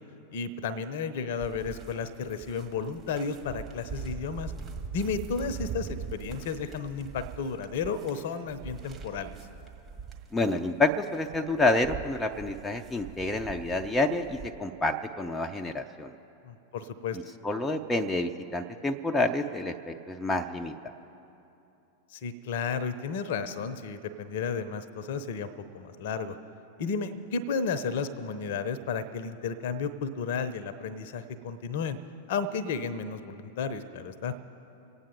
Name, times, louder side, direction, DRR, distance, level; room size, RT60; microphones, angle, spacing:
voice 1, 0.3-4.5 4.9-9.4 16.4-17.2 22.1-26.4 26.8-32.0 32.3-34.3, left 5 dB, 55° left, 12 dB, 0.8 m, -33 dB
sound 1, 1.4-14.5, right 6 dB, 20° right, 1.8 m, -42 dB
voice 2, 10.3-16.1 17.1-20.9, left 2 dB, 10° left, 4 dB, 0.6 m, -28 dB
25.5 x 8.9 x 4.4 m, 2.9 s
figure-of-eight pair, 90°, 0 cm